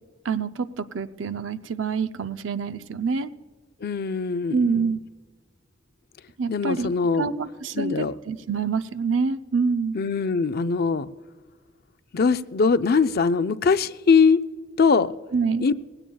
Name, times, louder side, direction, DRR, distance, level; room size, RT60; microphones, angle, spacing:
voice 1, 0.2-3.3 4.5-5.0 6.4-6.9 7.2-10.0 15.3-15.7, right 5 dB, 85° right, 0.6 m, -26 dB
voice 2, 3.8-4.9 6.5-7.3 7.7-8.2 9.9-11.1 12.1-14.4 14.8-15.1 15.6-15.7, left 5 dB, 55° left, 0.5 m, -21 dB
19.0 x 16.5 x 2.3 m
head